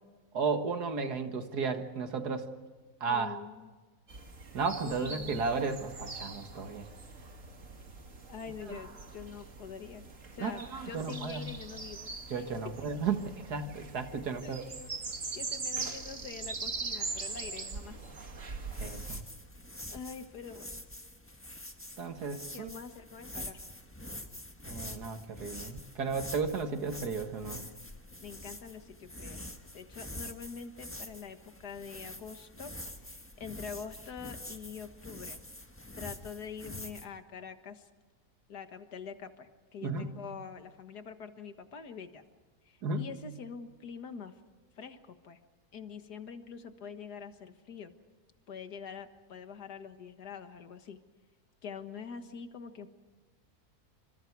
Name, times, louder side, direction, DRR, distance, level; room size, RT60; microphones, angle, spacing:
voice 1, 0.3-2.5 3.0-3.3 4.5-6.9 10.4-11.5 12.3-14.6 18.8-19.2 22.0-22.7 24.7-27.7 39.8-40.1 42.8-43.1, right 4 dB, 85° right, 7 dB, 2.2 m, -34 dB
voice 2, 3.1-3.7 4.8-5.5 8.3-10.0 10.3-12.1 12.4-12.9 14.4-14.9 15.3-18.1 19.9-20.8 22.5-23.7 28.2-29.4 29.7-32.7 33.0-35.4 36.0-37.9 38.5-42.2 42.7-44.4 44.8-45.4 45.7-47.9 48.5-51.0 51.6-52.9, left 6 dB, 90° left, 8 dB, 2.1 m, -45 dB
sound 1, 4.1-19.2, right 3 dB, 55° right, 2.4 m, -42 dB
sound 2, 18.7-37.1, left 1 dB, 10° left, 1.4 m, -46 dB
27.5 x 26.5 x 4.7 m, 1.4 s
omnidirectional pair, 1.7 m